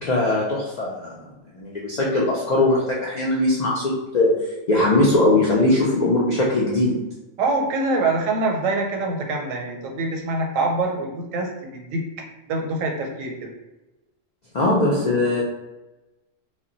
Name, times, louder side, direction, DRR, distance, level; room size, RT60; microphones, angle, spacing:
voice 1, 0.0-1.3 1.5-7.0 14.5-15.4, left 2 dB, 70° left, -4 dB, 0.4 m, -20 dB
voice 2, 7.4-12.0 12.5-13.5, right 2 dB, 85° right, 1 dB, 1.0 m, -25 dB
2.2 x 2.1 x 3.7 m, 1.1 s
omnidirectional pair, 1.3 m